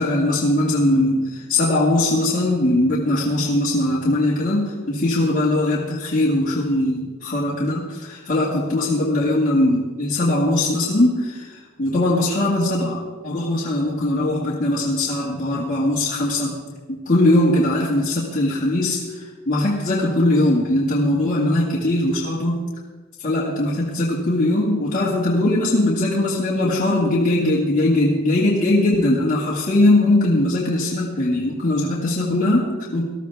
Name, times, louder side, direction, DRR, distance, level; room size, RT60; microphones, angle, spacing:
voice 1, 0.0-16.6 16.9-22.6 23.2-33.0, left 1 dB, 40° left, -7 dB, 2.1 m, -20 dB
19.5 x 13.5 x 3.5 m, 1.4 s
head